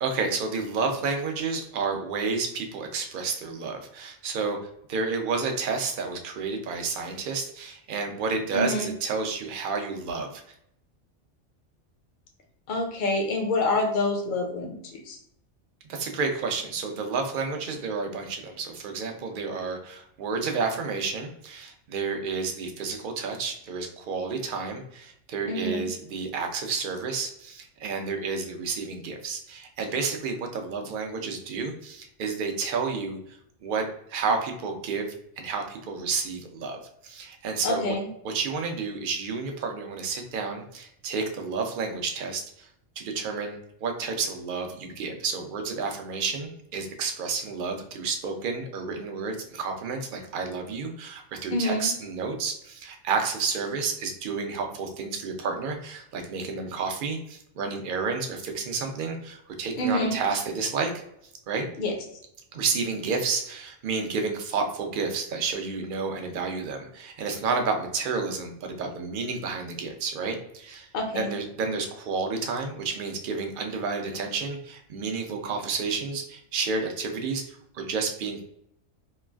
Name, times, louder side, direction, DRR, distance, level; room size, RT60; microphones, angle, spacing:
voice 1, 0.0-4.6 4.9-10.4 15.9-38.0 38.2-42.7 43.0-60.9 61.5-61.7 62.5-70.9 71.1-78.5, right 4 dB, 60° right, 3 dB, 0.6 m, -30 dB
voice 2, 8.5-8.9 12.7-15.2 25.5-25.9 37.6-38.1 51.5-51.9 59.8-60.2 61.8-61.9 70.9-71.3, left 2 dB, 55° left, 1 dB, 0.6 m, -27 dB
3.0 x 2.3 x 2.3 m, 0.73 s
omnidirectional pair, 1.2 m